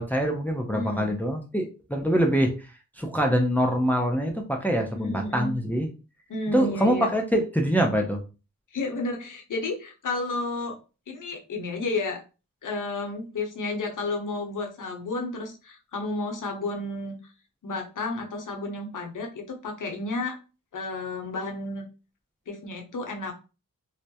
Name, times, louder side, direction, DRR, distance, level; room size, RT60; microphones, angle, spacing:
voice 1, 0.0-2.7 3.0-5.9 6.5-8.2, equal, 5° left, 2 dB, 0.5 m, -24 dB
voice 2, 0.7-1.2 4.9-5.6 6.3-7.1 8.7-10.8 11.1-12.2 12.6-17.2 17.6-20.4 20.7-21.8 22.5-23.3, left 2 dB, 65° left, 2 dB, 0.8 m, -32 dB
2.2 x 2.1 x 2.8 m, 0.32 s
cardioid pair, 55°, 34 cm